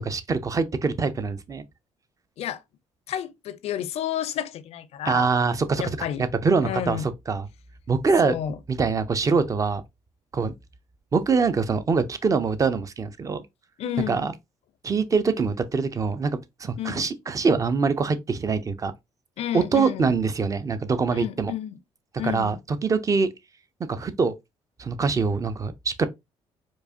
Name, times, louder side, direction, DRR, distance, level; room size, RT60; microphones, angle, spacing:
voice 1, 0.0-1.6 5.0-5.8 6.2-7.5 7.9-8.3 8.7-9.8 10.3-10.5 11.1-13.4 14.1-14.3 14.8-18.9 19.5-21.5 22.2-23.3 23.9-24.3 24.8-26.1, right 4 dB, 30° right, 0.6 m, -24 dB
voice 2, 3.1-5.3 5.8-6.3 6.6-7.1 8.2-8.6 13.8-14.3 16.8-17.1 19.4-20.1 21.1-21.8 22.2-22.6, left 10 dB, 70° left, 0.5 m, -31 dB
4.6 x 2.5 x 2.7 m
cardioid pair, 95°, 11 cm